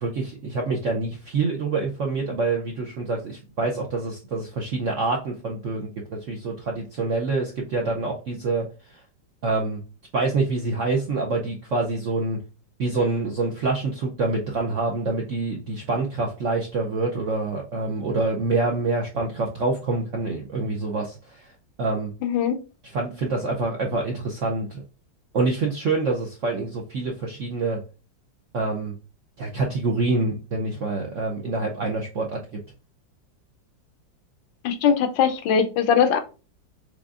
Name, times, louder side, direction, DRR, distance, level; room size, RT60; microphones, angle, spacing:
voice 1, 0.0-8.7 9.4-9.8 10.1-12.4 12.8-21.5 21.8-22.1 22.9-24.8 25.3-27.8 28.5-28.9 29.4-32.4, right 3 dB, 70° right, 0 dB, 0.7 m, -26 dB
voice 2, 22.2-22.6 34.6-36.2, left 7 dB, 80° left, 9 dB, 1.3 m, -21 dB
5.0 x 3.6 x 2.4 m, 0.33 s
omnidirectional pair, 2.0 m